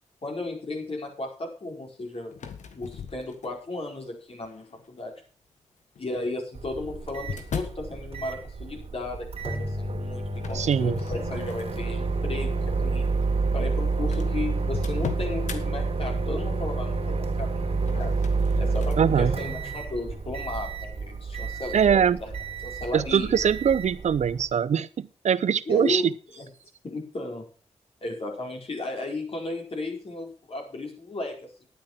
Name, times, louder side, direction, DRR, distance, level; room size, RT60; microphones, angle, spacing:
voice 1, 0.2-2.4 2.7-5.1 6.0-13.1 13.5-18.2 18.6-22.3 22.6-23.4 25.7-26.1 26.4-26.5 26.8-27.4 28.0-31.5, left 2 dB, 50° left, 1 dB, 4.7 m, -34 dB
sound 1, 2.3-3.8 4.4-4.9 6.0-7.9 10.3-11.9 12.4-12.6 13.4-13.5 13.7-13.8 14.1-15.6 17.7-19.0, left 7 dB, 85° left, 1.4 m, -38 dB
Microwave oven, 6.5-24.5, right 3 dB, 55° right, 2.9 m, -29 dB
voice 2, 10.5-11.0 19.0-19.3 21.7-22.2 22.9-26.0, right 8 dB, 70° right, 17 dB, 0.7 m, -22 dB
10.0 x 9.6 x 5.8 m, 0.39 s
cardioid pair, 60°, 12 cm